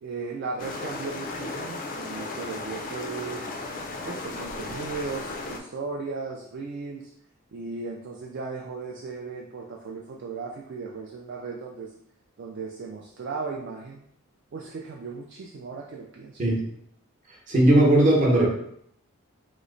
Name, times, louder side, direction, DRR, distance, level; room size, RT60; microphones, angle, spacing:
voice 1, 0.0-3.5 4.0-7.1 7.5-11.9 12.4-14.0 14.5-16.4, right 4 dB, 50° right, -1 dB, 0.3 m, -36 dB
sound 1, 0.6-5.6, left 2 dB, 40° left, 0.3 m, -35 dB
voice 2, 17.5-18.5, right 1 dB, 35° right, -3 dB, 0.8 m, -18 dB
3.0 x 2.0 x 3.7 m, 0.70 s
head